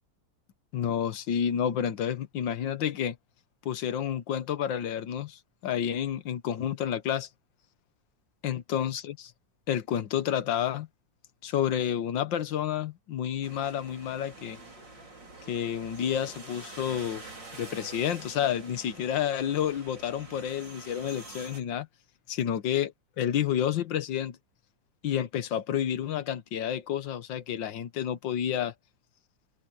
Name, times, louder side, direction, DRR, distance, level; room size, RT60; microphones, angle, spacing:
voice 1, 0.7-3.2 3.7-7.3 8.4-9.3 9.7-10.9 11.4-14.6 15.5-17.2 17.5-21.9 22.3-22.9 23.2-24.4 25.0-28.7, left 9 dB, 85° left, 1.8 m, -30 dB
sound 1, 13.4-21.6, right 2 dB, 75° right, 6.3 m, -46 dB
omnidirectional pair, 2.0 m